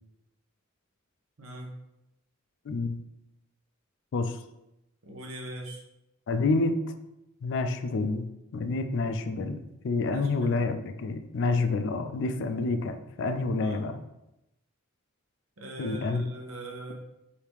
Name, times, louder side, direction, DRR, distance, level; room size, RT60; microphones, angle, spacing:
voice 1, 1.4-1.8 5.0-5.8 10.1-10.6 13.6-13.8 15.6-16.9, right 1 dB, 70° right, 0 dB, 0.8 m, -41 dB
voice 2, 2.7-3.0 4.1-4.4 6.3-6.8 7.4-8.3 8.5-14.0 15.8-16.2, left 3 dB, 60° left, 7 dB, 0.4 m, -28 dB
3.4 x 2.8 x 4.5 m, 0.90 s
head